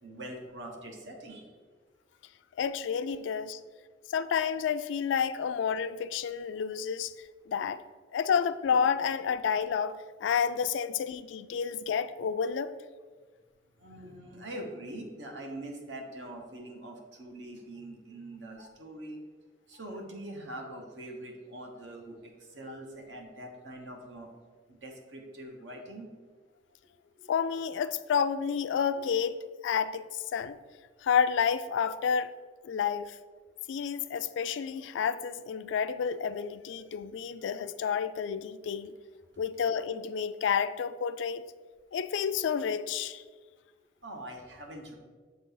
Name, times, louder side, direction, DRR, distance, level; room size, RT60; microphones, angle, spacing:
voice 1, 0.0-1.6 11.5-11.6 13.8-19.2 19.7-24.3 24.7-26.1 27.2-27.3 44.0-45.0, right 1 dB, 80° right, 2 dB, 1.1 m, -43 dB
voice 2, 2.6-3.6 4.1-7.1 7.5-7.8 8.1-12.7 27.3-29.4 29.6-30.6 31.0-32.3 32.6-33.2 33.7-38.9 39.4-41.4 41.9-43.2, left 7 dB, 85° left, 14 dB, 0.3 m, -30 dB
7.2 x 3.8 x 3.8 m, 1.5 s
head